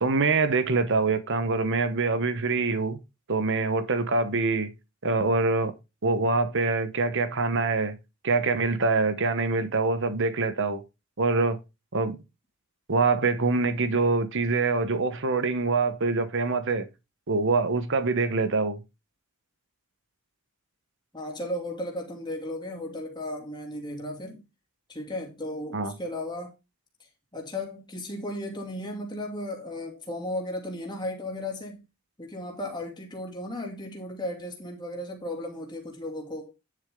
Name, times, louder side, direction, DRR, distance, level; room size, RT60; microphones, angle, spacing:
voice 1, 0.0-3.0 3.3-4.7 5.0-5.7 6.0-8.0 8.2-10.8 11.2-11.6 11.9-12.2 12.9-16.9 17.3-18.8 25.7-25.9, right 3 dB, 55° right, 1.1 m, -25 dB
voice 2, 21.1-24.4 24.9-26.5 27.3-31.8 32.2-36.5, left 1 dB, 20° left, 2.7 m, -35 dB
10.0 x 7.2 x 3.7 m
head